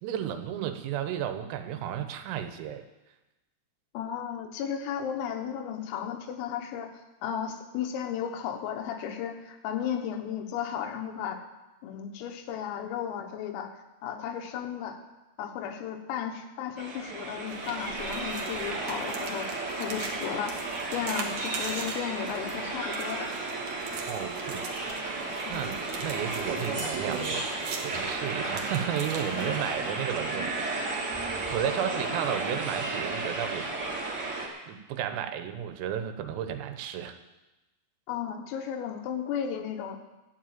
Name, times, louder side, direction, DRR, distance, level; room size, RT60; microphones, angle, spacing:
voice 1, 0.0-2.8 24.1-24.7 25.5-27.5 27.8-31.0 31.5-33.7 34.7-37.2, right 9 dB, 85° right, 8 dB, 3.6 m, -33 dB
voice 2, 3.9-6.9 7.2-11.4 11.8-13.7 14.0-15.0 15.4-23.3 23.8-23.9 25.5-25.6 29.3-29.7 38.1-40.0, left 8 dB, 90° left, 5 dB, 3.9 m, -34 dB
sound 1, 16.8-34.5, right 3 dB, 45° right, 1.5 m, -33 dB
sound 2, 17.5-29.9, right 5 dB, 70° right, 2.0 m, -42 dB
sound 3, 24.9-27.0 28.9-29.0 29.9-30.1 30.6-32.0, right 1 dB, 20° right, 1.2 m, -52 dB
13.0 x 7.6 x 8.9 m, 1.0 s
omnidirectional pair, 5.9 m